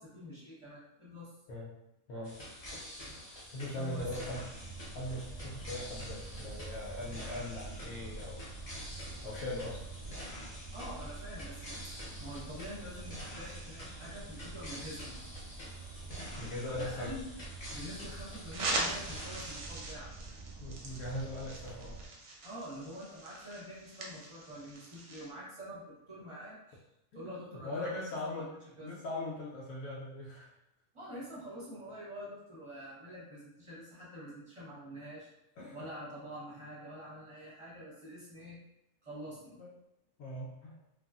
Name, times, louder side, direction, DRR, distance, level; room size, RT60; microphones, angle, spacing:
voice 1, 0.0-1.3 3.6-4.1 10.7-15.2 16.6-17.2 17.7-20.1 22.4-26.8 27.1-28.9 30.9-35.3 35.7-38.6 39.0-39.6, equal, 25° right, -7 dB, 0.9 m, -46 dB
sound 1, 2.2-19.6, equal, 40° left, 0.5 m, -47 dB
voice 2, 3.5-4.5 4.9-8.4 9.2-9.8 16.4-17.1 20.6-22.0 27.1-28.5 28.8-30.5 35.6-35.8 39.6-39.7 40.2-40.8, left 1 dB, 75° left, -4 dB, 1.1 m, -40 dB
sound 2, 4.0-22.1, right 3 dB, 90° right, 0.4 m, -47 dB
sound 3, 18.5-25.3, right 2 dB, 60° right, 0.8 m, -41 dB
3.2 x 2.3 x 2.4 m, 0.87 s
omnidirectional pair, 1.6 m